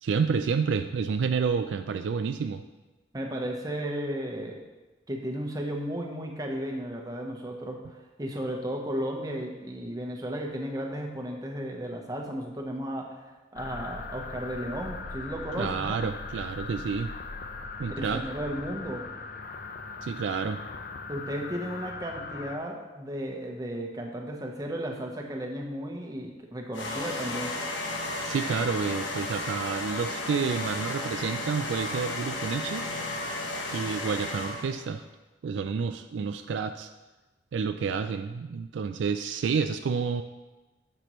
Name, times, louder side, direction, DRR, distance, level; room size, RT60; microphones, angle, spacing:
voice 1, 0.0-2.6 15.6-17.1 17.8-18.2 20.0-20.6 28.2-32.9 33.7-35.1 35.4-36.9 37.5-40.2, right 5 dB, 70° right, 8 dB, 0.3 m, -29 dB
voice 2, 3.1-4.6 5.1-13.2 13.5-16.0 17.9-19.1 21.1-27.5, equal, 20° right, 1 dB, 0.9 m, -34 dB
sound 1, 13.6-22.6, left 4 dB, 50° left, 0.6 m, -39 dB
sound 2, 26.7-34.9, left 2 dB, 70° left, 1.1 m, -33 dB
10.0 x 6.8 x 3.1 m, 1.1 s
head